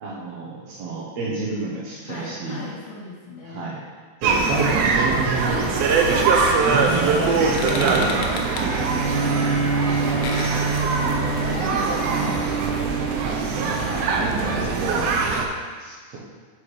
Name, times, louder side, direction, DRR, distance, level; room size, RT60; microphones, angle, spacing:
voice 1, 0.0-2.6 3.4-3.8 4.2-5.7 6.1-8.5 9.1-9.4 13.3-15.0 15.8-16.2, right 3 dB, 65° right, -6 dB, 1.7 m, -29 dB
voice 2, 2.0-3.7 5.5-6.4 7.2-11.1 11.4-12.5 13.4-14.7, left 1 dB, 60° left, -5 dB, 2.3 m, -36 dB
sound 1, 4.2-15.5, right 4 dB, 90° right, 1.4 m, -22 dB
sound 2, 6.4-11.9, left 4 dB, 85° left, 2.1 m, -36 dB
Bowed string instrument, 8.6-14.1, right 3 dB, 20° left, 1.0 m, -27 dB
6.2 x 4.8 x 4.8 m, 1.5 s
omnidirectional pair, 3.6 m